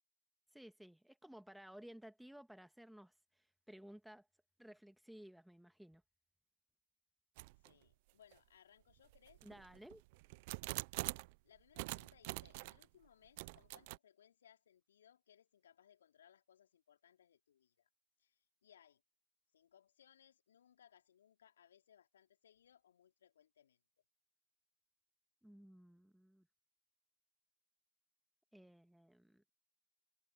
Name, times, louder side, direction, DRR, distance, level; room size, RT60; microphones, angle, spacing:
voice 1, 0.5-4.3 4.6-6.0 9.4-10.0 25.4-26.5 28.5-29.4, equal, ahead, 1.7 m, -57 dB
sound 1, 7.4-7.7 8.3-8.4 9.1-11.4 11.8-12.9 13.4-14.0, right 24 dB, 50° right, 0.6 m, -45 dB
voice 2, 7.6-9.4 11.4-17.9 18.2-19.0 19.5-23.8, left 9 dB, 70° left, 4.5 m, -67 dB
hypercardioid pair, 110°, 0 cm